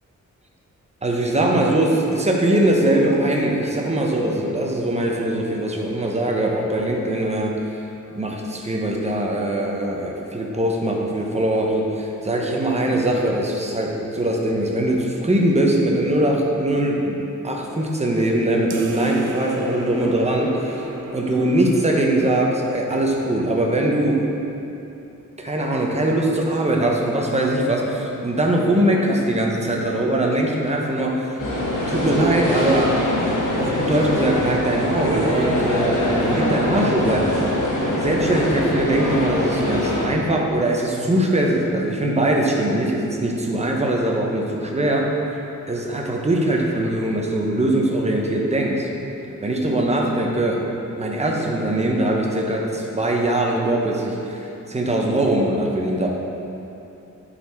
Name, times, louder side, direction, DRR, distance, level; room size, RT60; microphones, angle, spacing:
voice 1, 1.0-7.7 8.1-20.8 21.1-24.4 25.4-31.4 31.9-32.9 33.6-37.3 38.0-45.1 45.7-48.9 49.4-50.6 50.9-56.1, right 1 dB, 20° right, -1 dB, 0.7 m, -21 dB
sound 1, 18.7-23.6, right 3 dB, 55° right, 0.6 m, -34 dB
sound 2, 31.4-40.0, left 1 dB, 80° left, 1.4 m, -23 dB
8.3 x 4.2 x 4.4 m, 2.9 s
wide cardioid pair, 160°, 31 cm